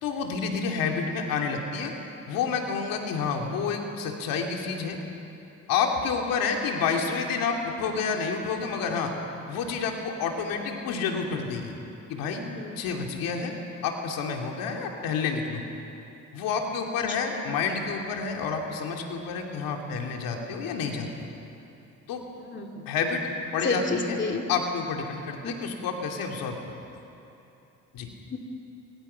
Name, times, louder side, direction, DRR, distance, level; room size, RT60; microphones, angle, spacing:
voice 1, 0.0-1.9 2.3-5.0 5.7-9.1 9.5-11.7 12.1-12.4 12.8-13.5 13.8-15.6 16.3-21.1 22.1-22.2 22.9-23.2 23.5-24.2 24.5-26.6 27.9-28.1, left 5 dB, 90° left, 2 dB, 2.6 m, -29 dB
voice 2, 12.3-12.7 17.1-17.2 22.4-22.9 23.6-24.4 25.4-25.6 28.3-28.4, left 3 dB, 35° left, 2 dB, 2.5 m, -30 dB
25.0 x 24.0 x 5.7 m, 2.8 s
cardioid pair, 105°, 33 cm